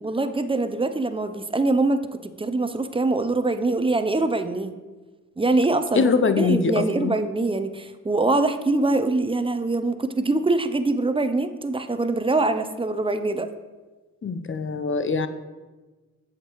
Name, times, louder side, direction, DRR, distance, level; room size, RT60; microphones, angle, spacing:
voice 1, 0.0-2.1 2.4-4.7 5.4-6.1 6.4-13.5, right 2 dB, 15° right, 10 dB, 0.6 m, -23 dB
voice 2, 5.9-7.2 14.2-15.3, left 4 dB, 35° left, 10 dB, 0.6 m, -23 dB
8.1 x 6.6 x 3.1 m, 1.3 s
cardioid pair, 50°, 35 cm